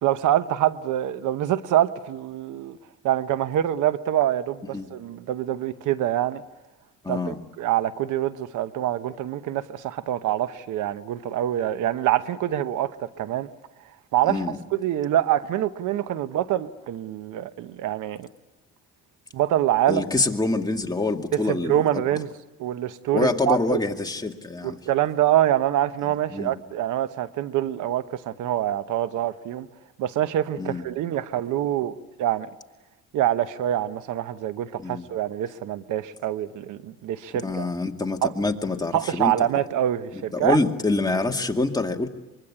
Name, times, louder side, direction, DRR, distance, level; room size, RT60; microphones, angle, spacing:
voice 1, 0.0-2.8 3.0-6.4 7.1-13.5 14.1-14.4 14.7-18.3 19.3-20.0 21.3-22.3 22.6-23.8 24.6-29.7 30.0-32.5 33.1-37.7 38.2-38.3 38.9-40.6, right 12 dB, 85° right, 13 dB, 1.0 m, -25 dB
voice 2, 7.0-7.4 14.3-14.6 19.9-22.0 23.1-24.8 26.3-26.6 30.6-30.8 34.8-35.1 37.4-39.5 40.1-42.1, left 2 dB, 15° left, 2 dB, 2.3 m, -26 dB
24.5 x 23.5 x 9.8 m, 1.1 s
cardioid pair, 90°, 30 cm